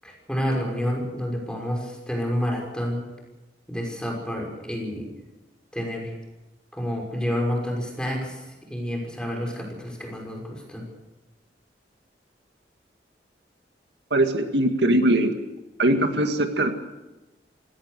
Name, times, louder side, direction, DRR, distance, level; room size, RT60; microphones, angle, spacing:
voice 1, 0.0-3.0 3.7-5.1 5.7-6.2 6.7-10.8, equal, 5° left, 0 dB, 6.0 m, -29 dB
voice 2, 14.1-15.4 15.8-16.7, right 1 dB, 80° right, 6 dB, 2.0 m, -21 dB
26.0 x 17.5 x 6.8 m, 1.0 s
head